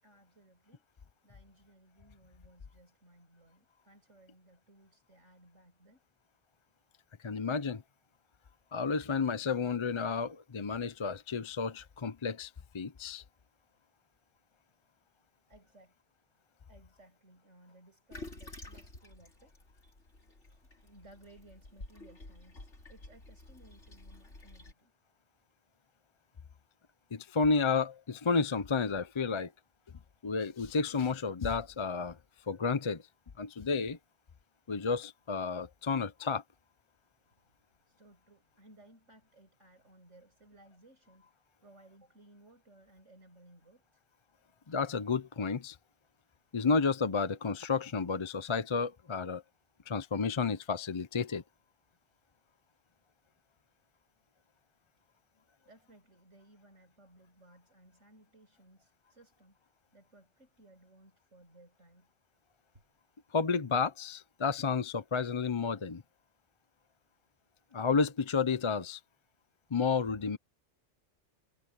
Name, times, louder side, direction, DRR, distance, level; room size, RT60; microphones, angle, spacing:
voice 1, 0.0-6.0 15.5-16.0 16.7-19.6 20.0-20.3 20.8-24.9 37.9-41.3 41.6-44.0 55.6-59.6 59.9-62.1, right 1 dB, 85° right, 8.5 m, -60 dB
voice 2, 7.2-7.8 8.7-13.2 27.1-29.5 30.2-32.2 32.5-33.0 33.4-34.0 34.7-36.4 44.7-45.8 46.5-49.4 49.9-51.4 63.3-66.0 67.7-69.0 69.7-70.4, left 5 dB, 35° left, 0.5 m, -31 dB
Toilet flush, 18.1-24.7, left 2 dB, 75° left, 4.2 m, -50 dB
omnidirectional pair, 1.2 m